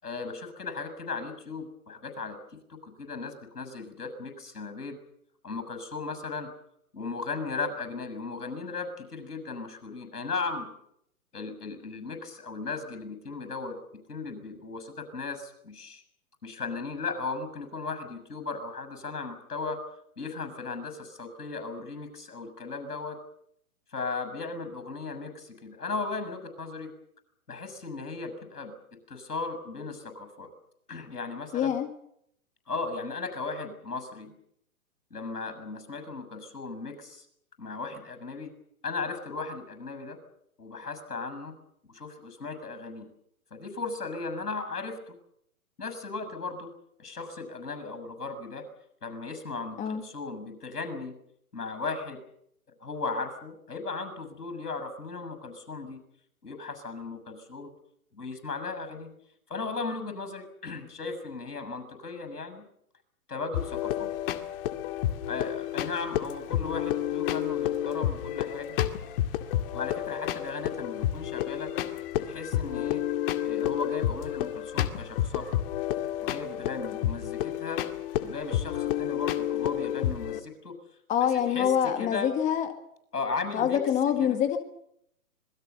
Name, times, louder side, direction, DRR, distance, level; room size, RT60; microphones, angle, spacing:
voice 1, 0.0-5.0 5.4-6.5 6.9-10.7 11.3-13.8 14.1-16.0 16.4-19.8 20.2-23.2 23.9-26.9 27.5-28.7 29.1-30.5 30.9-31.7 32.7-34.3 35.1-37.3 37.6-38.5 38.8-40.2 40.6-41.5 41.9-43.1 43.5-45.2 45.8-46.7 47.0-48.6 49.0-51.1 51.5-52.2 52.8-56.0 56.4-57.7 58.1-59.1 59.5-62.7 63.3-64.1 65.3-68.8 69.7-71.7 72.2-73.0 73.4-75.5 76.2-77.8 78.2-80.7 81.5-82.3 83.1-83.8 84.2-84.4, left 4 dB, 90° left, 10 dB, 6.9 m, -36 dB
voice 2, 31.5-31.9 49.8-50.0 81.1-82.7 83.5-84.6, left 9 dB, 15° left, 8 dB, 1.8 m, -25 dB
sound 1, 63.5-80.4, left 12 dB, 35° left, 2.1 m, -30 dB
26.0 x 21.0 x 7.0 m, 0.73 s
hypercardioid pair, 135°, 45 cm